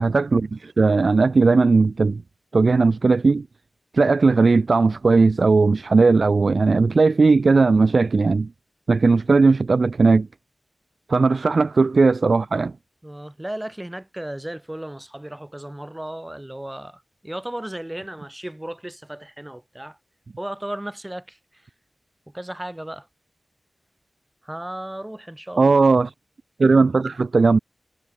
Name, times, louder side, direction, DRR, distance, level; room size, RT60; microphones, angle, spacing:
voice 1, 0.0-2.2 2.5-3.5 3.9-8.5 8.9-10.3 11.1-12.7 25.6-26.1 26.6-27.6, right 4 dB, 60° right, 0.5 m, -17 dB
voice 2, 13.0-20.0 20.4-21.4 22.3-23.1 24.4-25.7, right 1 dB, 15° right, 2.2 m, -35 dB
wide cardioid pair, 70°, 0 cm